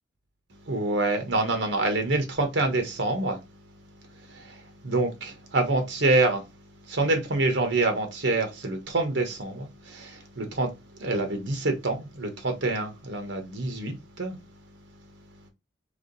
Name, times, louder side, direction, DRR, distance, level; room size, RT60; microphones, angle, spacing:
voice 1, 0.7-3.4 4.2-6.5 6.9-14.4, right 2 dB, 70° right, 1.2 m, -26 dB
3.6 x 3.3 x 3.8 m
head